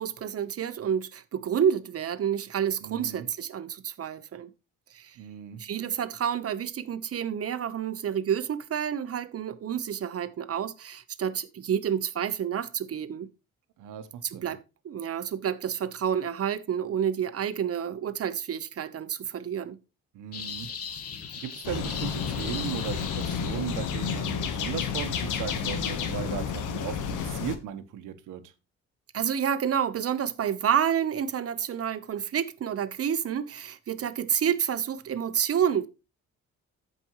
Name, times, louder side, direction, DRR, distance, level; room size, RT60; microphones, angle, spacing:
voice 1, 0.0-4.5 4.9-5.2 5.6-13.3 14.2-14.6 14.8-19.8 29.1-35.9, right 8 dB, 50° right, 1.1 m, -29 dB
voice 2, 2.8-3.3 5.2-5.6 13.8-14.5 20.1-20.7 21.4-28.4, right 9 dB, 85° right, 1.3 m, -37 dB
sound 1, 20.3-24.0, left 7 dB, 50° left, 1.5 m, -39 dB
sound 2, 21.6-27.6, left 7 dB, 80° left, 1.3 m, -31 dB
14.5 x 5.3 x 3.1 m
cardioid pair, 90°, 30 cm